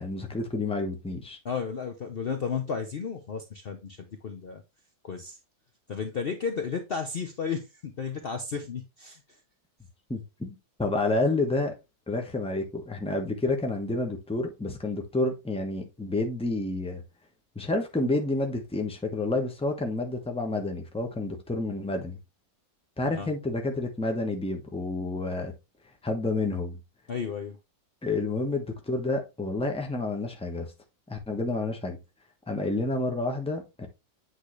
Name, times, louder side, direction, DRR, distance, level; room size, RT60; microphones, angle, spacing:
voice 1, 0.0-1.4 10.1-11.7 12.1-17.0 17.5-22.2 23.0-25.5 26.0-26.8 28.0-30.7 31.1-32.0 32.5-33.9, left 2 dB, 5° left, 0.7 m, -29 dB
voice 2, 1.4-4.6 5.0-5.4 5.9-9.2 23.1-23.3 27.1-27.6, left 6 dB, 70° left, 0.5 m, -33 dB
8.3 x 4.0 x 3.2 m
omnidirectional pair, 2.1 m